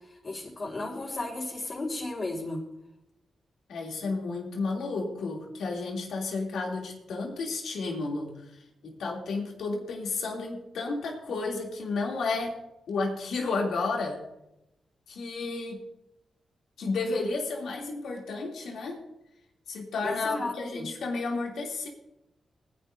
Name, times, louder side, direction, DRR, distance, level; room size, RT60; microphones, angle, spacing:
voice 1, 0.0-2.6 20.0-20.9, left 2 dB, 45° left, -7 dB, 4.5 m, -34 dB
voice 2, 3.7-12.6 12.9-14.2 15.1-15.8 16.8-19.0 19.7-21.9, left 3 dB, 85° left, -1 dB, 2.9 m, -32 dB
21.0 x 11.0 x 2.7 m, 0.87 s
cardioid pair, 60°, 0 cm